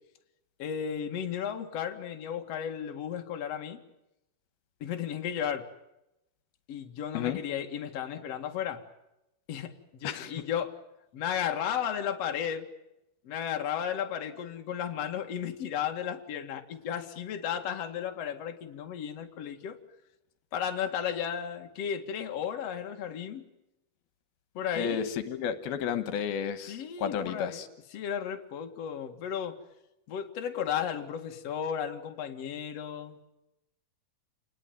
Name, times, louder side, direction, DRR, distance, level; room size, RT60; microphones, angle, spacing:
voice 1, 0.6-3.8 4.8-5.7 6.7-8.8 9.5-10.7 11.1-12.7 13.2-19.8 20.5-23.5 24.5-25.1 26.7-29.6 30.1-33.3, left 8 dB, 45° left, 5 dB, 2.7 m, -34 dB
voice 2, 24.7-27.7, left 8 dB, 75° left, 11 dB, 3.2 m, -32 dB
28.5 x 20.0 x 9.4 m, 0.90 s
omnidirectional pair, 4.5 m